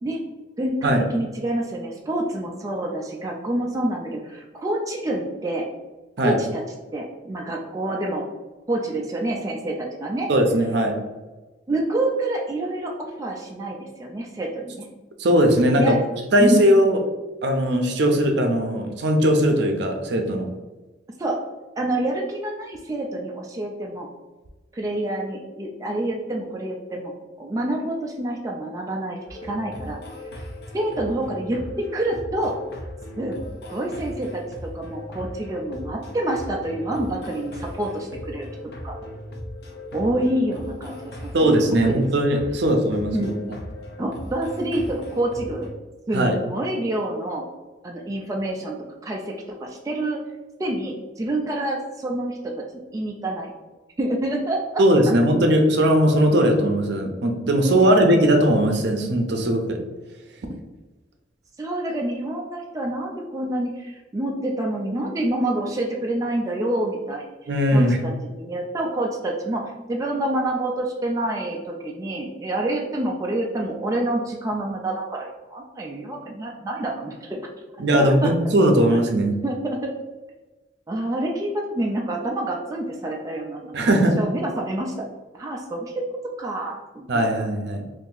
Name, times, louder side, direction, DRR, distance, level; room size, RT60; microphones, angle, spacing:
voice 1, 0.6-5.6 6.2-6.6 6.9-8.3 8.7-10.3 11.7-14.9 15.7-16.0 16.4-16.6 21.2-21.4 21.8-24.1 24.7-27.1 27.4-30.0 30.3-30.4 30.7-32.6 33.2-33.4 33.7-34.4 34.7-38.5 38.8-38.9 39.9-41.5 41.8-42.1 43.1-43.4 44.0-45.7 46.1-47.4 47.8-48.8 49.0-49.3 49.6-50.2 50.6-53.5 54.0-54.8 57.6-57.8 61.6-77.4 77.9-78.3 79.4-79.9 80.9-83.9 84.2-85.1 85.3-86.0 86.4-87.1, right 1 dB, 20° right, -1 dB, 0.3 m, -27 dB
voice 2, 10.3-11.0 15.2-16.0 16.3-17.0 17.4-20.5 41.3-43.3 46.1-46.4 54.8-59.8 67.5-68.0 77.8-79.4 83.7-84.2 87.1-87.9, right 1 dB, 65° right, 3 dB, 0.5 m, -19 dB
sound 1, 29.3-45.7, left 1 dB, 60° left, 0.5 m, -37 dB
2.8 x 2.5 x 3.8 m, 1.2 s
head